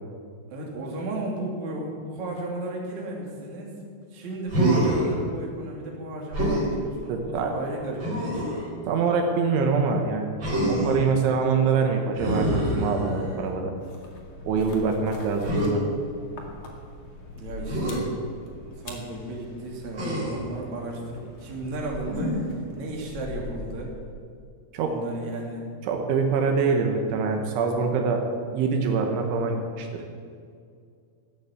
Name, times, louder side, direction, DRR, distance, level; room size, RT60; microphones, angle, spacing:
voice 1, 0.5-3.8 4.1-8.5 17.3-18.1 18.8-22.4 22.7-23.9 24.8-25.7, right 1 dB, 45° right, -2 dB, 3.6 m, -34 dB
Human voice, 4.5-5.1 6.3-6.7 8.0-8.7 10.4-11.1 12.2-13.4 15.4-15.7 17.7-18.0 19.9-20.5 22.1-22.6, right 1 dB, 25° right, 5.1 m, -26 dB
voice 2, 7.1-7.5 8.9-10.4 10.7-12.5 12.7-13.7 14.5-15.9 24.7-25.0 25.8-28.2 28.5-30.0, right 5 dB, 80° right, 3 dB, 3.7 m, -24 dB
sound 1, 13.8-24.2, left 1 dB, 45° left, 1.8 m, -42 dB
15.0 x 9.8 x 8.4 m, 2.3 s
omnidirectional pair, 5.4 m